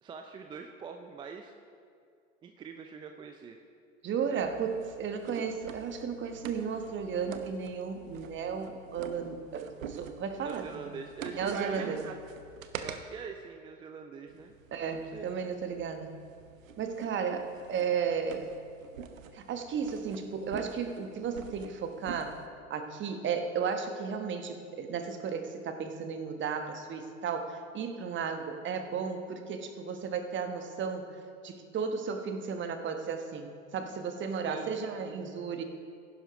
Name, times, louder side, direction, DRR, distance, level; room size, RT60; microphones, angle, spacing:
voice 1, 0.0-1.5 2.4-3.6 4.3-4.5 10.4-11.8 12.8-14.5 14.9-15.3 34.4-34.7, right 6 dB, 15° right, 5 dB, 0.3 m, -44 dB
voice 2, 4.0-10.9 11.3-12.1 14.7-16.2 16.8-18.5 19.3-22.4 22.7-31.1 31.4-35.6, right 6 dB, 30° right, 6 dB, 1.1 m, -34 dB
sound 1, 4.4-13.0 14.3-22.5, right 6 dB, 80° right, 0.8 m, -46 dB
15.5 x 11.5 x 3.1 m, 2.3 s
hypercardioid pair, 85°, 40 cm